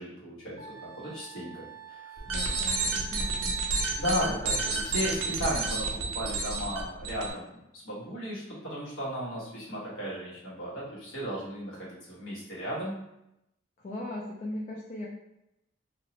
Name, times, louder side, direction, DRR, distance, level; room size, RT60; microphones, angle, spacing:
voice 1, 0.0-2.0 4.0-13.0, equal, 80° left, -7 dB, 1.2 m, -35 dB
Wind instrument woodwind instrument, 0.6-5.4, right 5 dB, 30° right, 0.6 m, -48 dB
sound 1, 2.2-7.3, right 3 dB, 75° right, 0.5 m, -30 dB
voice 2, 2.3-3.8 4.1-4.4 13.8-15.1, left 1 dB, 35° left, -4 dB, 0.3 m, -39 dB
2.7 x 2.0 x 2.7 m, 0.86 s
head